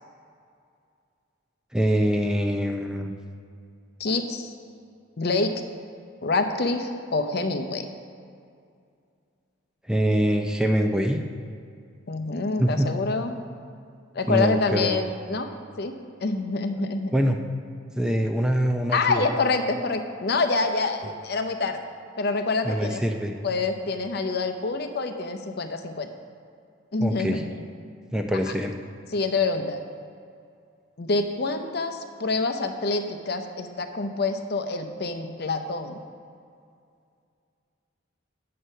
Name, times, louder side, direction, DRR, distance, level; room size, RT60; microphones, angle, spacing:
voice 1, 1.7-3.1 9.9-11.2 12.6-12.9 14.3-15.0 17.1-17.4 18.0-19.2 22.6-23.3 27.0-27.4 28.1-28.7, equal, 5° right, 4 dB, 0.4 m, -24 dB
voice 2, 4.0-4.5 5.2-5.6 6.2-7.9 12.1-13.4 14.1-15.5 15.8-17.1 18.9-21.8 22.2-23.0 23.4-26.1 26.9-27.7 29.1-29.8 31.0-36.0, left 3 dB, 55° left, 7 dB, 0.6 m, -26 dB
8.0 x 7.6 x 5.5 m, 2.3 s
head